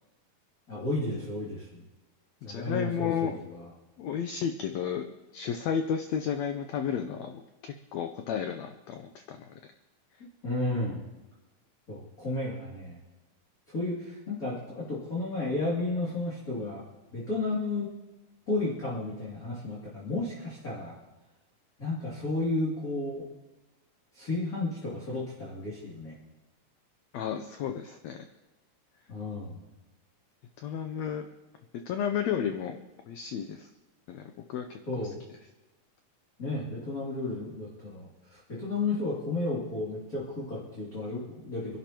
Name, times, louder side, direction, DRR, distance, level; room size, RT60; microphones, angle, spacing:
voice 1, 0.7-1.9 2.4-3.7 10.4-11.1 11.9-13.0 13.7-16.8 17.1-17.9 18.5-20.9 21.8-23.2 24.1-26.1 29.1-29.6 34.9-35.2 36.4-41.8, left 2 dB, 25° left, -7 dB, 2.9 m, -33 dB
voice 2, 2.5-3.4 4.0-5.0 5.3-9.6 27.1-28.2 30.6-31.3 31.9-32.8 33.1-33.7 34.1-34.7, left 8 dB, 75° left, 6 dB, 1.6 m, -32 dB
27.0 x 11.5 x 3.0 m, 1.1 s
omnidirectional pair, 3.7 m